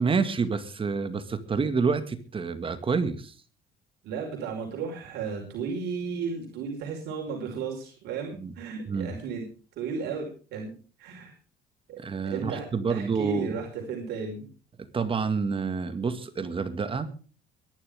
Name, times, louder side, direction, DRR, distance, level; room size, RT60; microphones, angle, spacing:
voice 1, 0.0-3.4 8.3-8.5 8.9-9.1 12.0-13.6 14.9-17.1, right 5 dB, 30° right, 10 dB, 2.1 m, -28 dB
voice 2, 4.0-9.4 9.8-10.7 11.0-11.3 11.9-12.0 12.3-14.5, right 5 dB, 80° right, 1 dB, 5.3 m, -34 dB
23.0 x 11.5 x 3.7 m, 0.38 s
cardioid pair, 110°, 17 cm